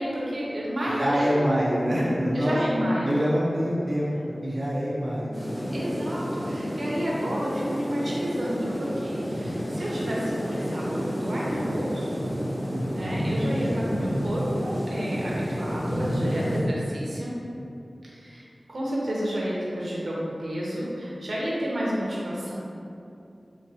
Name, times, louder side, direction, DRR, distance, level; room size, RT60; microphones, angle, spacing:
voice 1, 0.0-1.4 2.3-3.2 5.7-12.3 12.9-17.4 18.0-22.5, equal, 75° right, -6 dB, 0.8 m, -30 dB
voice 2, 0.9-2.6 3.0-4.1 4.4-5.4 12.7-13.0, equal, 45° right, -8 dB, 0.5 m, -25 dB
sound 1, 5.3-16.6, equal, 40° left, 1.0 m, -30 dB
4.0 x 2.8 x 2.8 m, 2.7 s
wide cardioid pair, 75°, 0 cm